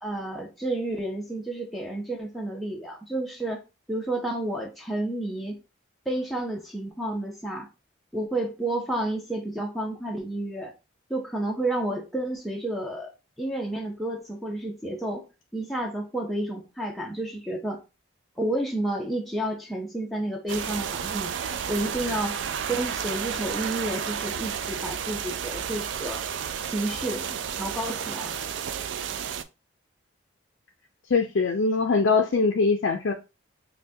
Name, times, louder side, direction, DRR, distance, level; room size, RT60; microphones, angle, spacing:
voice 1, 0.0-3.6 3.9-5.6 6.1-7.7 8.1-10.7 11.1-13.1 13.4-15.3 15.5-17.8 18.4-22.4 22.7-26.2 26.6-28.3, right 1 dB, ahead, 0.6 m, -31 dB
sound 1, 20.5-29.4, right 8 dB, 70° right, 0.3 m, -32 dB
voice 2, 31.1-33.1, left 4 dB, 70° left, 0.4 m, -22 dB
5.6 x 2.2 x 2.7 m
head